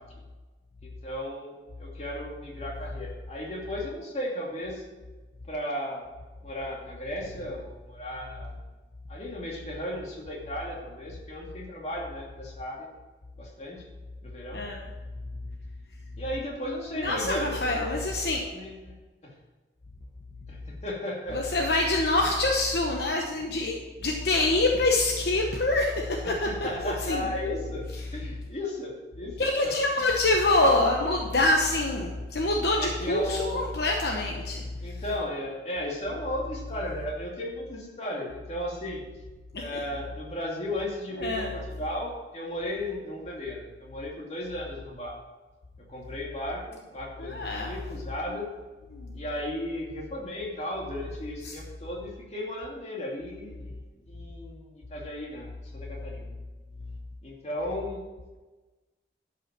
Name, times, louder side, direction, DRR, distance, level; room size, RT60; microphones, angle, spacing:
voice 1, 0.8-4.8 5.5-6.0 6.4-8.6 9.1-12.9 13.4-13.9 14.2-14.6 16.2-17.9 18.5-18.9 19.2-19.3 20.5-21.4 26.2-27.8 28.1-29.7 32.8-33.6 34.8-39.0 39.6-45.2 45.9-48.5 49.1-56.3 57.2-58.1, left 1 dB, 35° left, -2 dB, 2.4 m, -35 dB
voice 2, 16.9-18.4 21.3-23.7 24.0-26.5 26.8-27.3 29.4-35.0 39.5-39.8 41.2-41.5 47.2-47.7 48.3-48.4 48.9-49.2 51.4-51.5, left 2 dB, 65° left, 1 dB, 1.0 m, -26 dB
12.0 x 5.7 x 6.0 m, 1.2 s
head